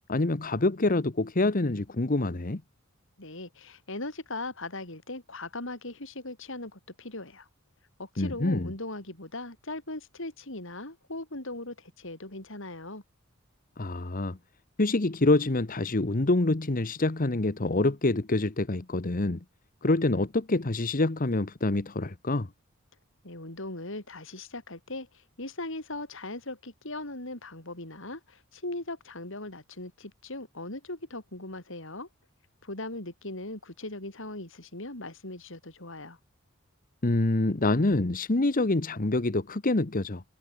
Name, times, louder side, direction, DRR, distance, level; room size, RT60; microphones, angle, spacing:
voice 1, 0.1-2.6 8.2-8.7 13.8-14.4 14.8-19.4 19.8-22.5 37.0-40.2, left 2 dB, 40° left, 1.1 m, -26 dB
voice 2, 3.2-7.5 8.0-13.0 23.2-25.1 25.4-32.1 32.6-36.2, left 2 dB, 65° left, 5.3 m, -39 dB
head